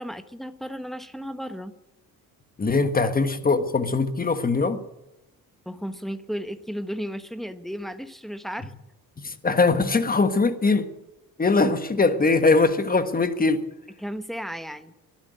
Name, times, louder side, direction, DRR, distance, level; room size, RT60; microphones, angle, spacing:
voice 1, 0.0-1.7 5.6-8.7 14.0-14.9, equal, ahead, 1.1 m, -34 dB
voice 2, 2.6-4.8 9.2-10.9 11.4-13.6, left 3 dB, 25° left, 1.4 m, -21 dB
12.0 x 12.0 x 9.5 m
cardioid pair, 95°, 36 cm